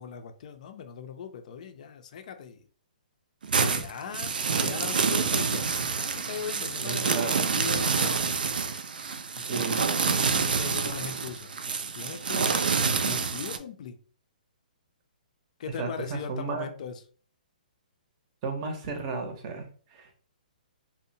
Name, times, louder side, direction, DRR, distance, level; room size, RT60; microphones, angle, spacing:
voice 1, 0.0-2.7 3.6-8.4 9.4-9.5 10.3-12.6 13.0-14.0 15.6-17.0, left 7 dB, 55° left, 0.4 m, -39 dB
sound 1, 3.4-13.6, right 5 dB, 80° right, 0.4 m, -27 dB
voice 2, 6.8-7.4 9.4-9.8 15.8-16.7 18.4-20.2, right 4 dB, 35° right, 0.6 m, -34 dB
2.7 x 2.0 x 2.6 m
hypercardioid pair, 145°, 5 cm